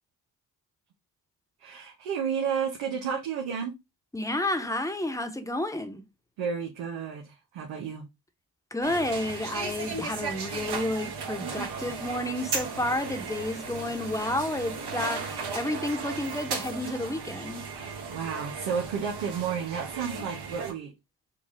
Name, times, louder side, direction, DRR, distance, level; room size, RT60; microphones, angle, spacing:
voice 1, 1.6-3.7 6.4-8.0 17.7-17.8 18.1-20.9, right 7 dB, 90° right, 0.9 m, -32 dB
voice 2, 4.1-6.0 8.7-17.6, left 1 dB, 5° left, 1.0 m, -31 dB
sound 1, 8.8-20.7, right 5 dB, 60° right, 1.3 m, -36 dB
5.9 x 2.3 x 3.5 m
supercardioid pair, 45°, 45 cm